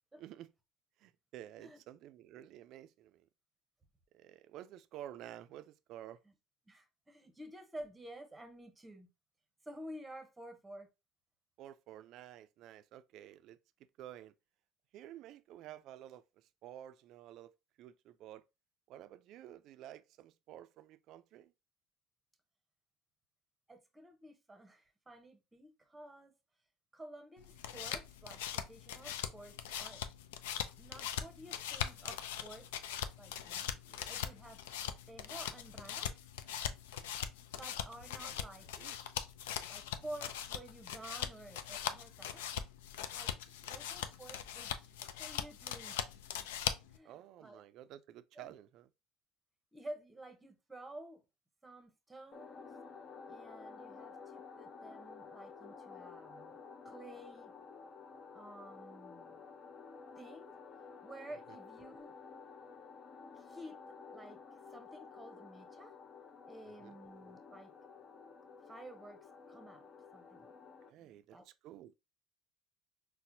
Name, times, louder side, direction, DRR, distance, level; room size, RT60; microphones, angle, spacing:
voice 1, 0.2-0.5 1.0-3.3 4.1-6.2 11.6-13.6 14.0-14.3 14.9-17.5 17.8-18.4 18.9-21.5 33.9-34.0 38.2-38.4 38.8-39.0 43.6-43.7 47.0-48.9 61.5-61.6 66.7-67.0 70.8-71.9, right 12 dB, 60° right, 0.3 m, -52 dB
voice 2, 6.7-9.1 9.6-10.9 23.7-26.3 26.9-30.0 30.8-32.7 33.2-33.7 34.1-34.6 35.1-36.2 37.6-38.7 39.7-42.4 43.1-43.4 43.7-44.9 45.2-46.1 46.9-47.6 48.3-48.5 49.7-51.2 51.6-52.7 53.3-57.5 58.3-59.4 60.2-60.6 61.0-62.1 63.3-63.8 64.1-64.4 64.7-66.0 66.5-67.8 68.7-70.5 71.0-71.5, right 1 dB, 10° right, 0.8 m, -51 dB
sound 1, 27.4-47.0, left 9 dB, 90° left, 0.3 m, -41 dB
sound 2, 52.3-70.9, left 5 dB, 45° left, 0.6 m, -52 dB
4.2 x 2.1 x 2.6 m
supercardioid pair, 95°, 0 cm